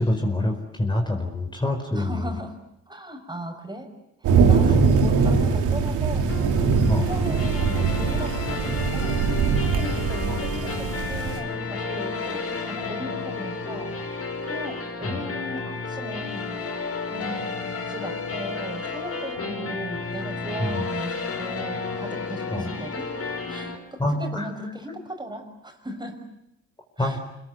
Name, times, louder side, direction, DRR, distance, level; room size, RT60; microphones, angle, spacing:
voice 1, 0.0-2.2 6.9-7.1 10.3-10.4 15.1-15.2 20.6-20.7 22.5-22.6 24.0-24.5 27.0-27.2, left 1 dB, 15° left, 3 dB, 4.7 m, -25 dB
voice 2, 1.9-2.6 2.9-3.9 4.2-6.4 7.0-9.3 9.7-13.9 14.4-16.6 17.1-17.5 17.9-23.1 23.5-26.3 27.0-27.2, equal, 15° right, 5 dB, 6.0 m, -37 dB
sound 1, 4.2-11.4, right 5 dB, 90° right, 4.1 m, -22 dB
sound 2, 6.3-23.8, left 4 dB, 50° left, 6.2 m, -32 dB
26.0 x 21.5 x 9.4 m, 0.85 s
cardioid pair, 90°, 30 cm